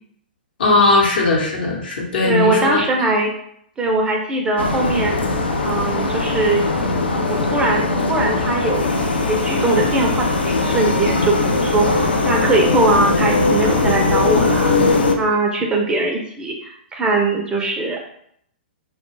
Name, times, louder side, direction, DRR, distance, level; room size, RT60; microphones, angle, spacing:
voice 1, 0.6-2.8, left 3 dB, 65° left, -2 dB, 0.8 m, -18 dB
voice 2, 2.2-3.3 3.8-6.6 7.3-18.0, right 2 dB, 15° right, 0 dB, 0.4 m, -21 dB
sound 1, 4.6-15.1, left 3 dB, 80° left, 0.4 m, -19 dB
2.3 x 2.2 x 3.0 m, 0.68 s
figure-of-eight pair, 110°, 6 cm